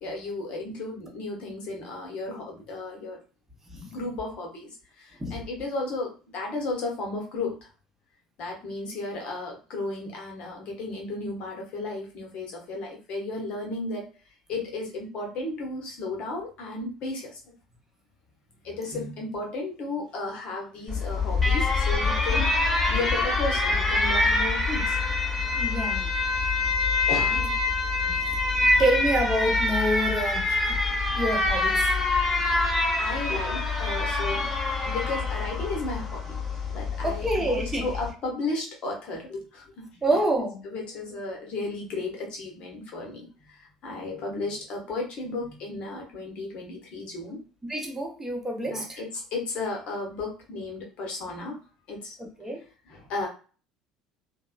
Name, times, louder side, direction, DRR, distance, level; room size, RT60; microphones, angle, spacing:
voice 1, 0.0-3.2 3.9-7.7 8.4-14.0 14.5-17.4 18.6-22.5 22.9-25.0 27.1-27.6 32.4-34.5 34.8-36.4 36.7-39.9 40.6-47.4 48.7-51.6 51.9-52.2 52.9-53.3, left 2 dB, 45° left, 0 dB, 1.0 m, -34 dB
Alarm, 20.9-38.1, left 3 dB, 10° left, 1.1 m, -25 dB
voice 2, 25.6-26.1 28.1-28.2 28.5-30.8 31.1-31.8 37.0-37.9 40.0-40.6 47.7-49.0 52.2-52.6, right 1 dB, 15° right, 1 dB, 0.8 m, -27 dB
2.8 x 2.1 x 2.3 m, 0.37 s
figure-of-eight pair, 60°, 2 cm